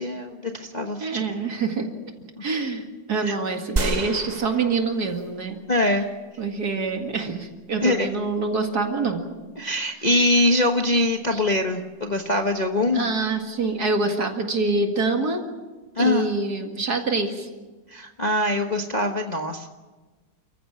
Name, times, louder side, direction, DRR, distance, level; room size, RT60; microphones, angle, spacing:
voice 1, 0.0-1.2 3.2-3.3 5.7-6.0 7.8-8.1 9.6-13.1 16.0-16.3 17.9-19.7, left 1 dB, 25° left, 3 dB, 1.1 m, -23 dB
voice 2, 1.0-1.9 2.4-5.6 6.4-9.2 11.3-11.4 12.9-15.4 16.0-17.5, right 3 dB, 55° right, 4 dB, 2.6 m, -25 dB
sound 1, 3.8-5.5 6.0-6.1, right 2 dB, 30° right, 0.8 m, -29 dB
29.5 x 15.0 x 7.4 m, 1.3 s
omnidirectional pair, 2.1 m